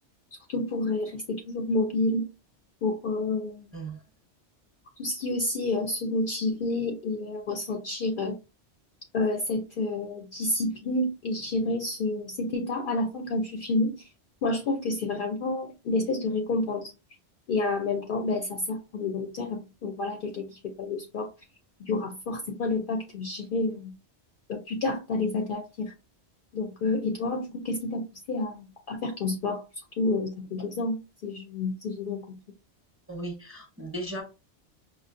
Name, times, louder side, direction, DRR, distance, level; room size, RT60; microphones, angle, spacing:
voice 1, 0.5-2.3 2.8-3.7 5.0-8.4 9.1-14.0 14.4-16.9 17.5-21.3 21.8-24.0 24.5-25.9 26.5-29.6 30.0-32.4, left 2 dB, 60° left, 0.6 m, -29 dB
voice 2, 33.1-34.2, right 1 dB, 15° right, 0.7 m, -36 dB
5.1 x 2.1 x 2.4 m
omnidirectional pair, 1.2 m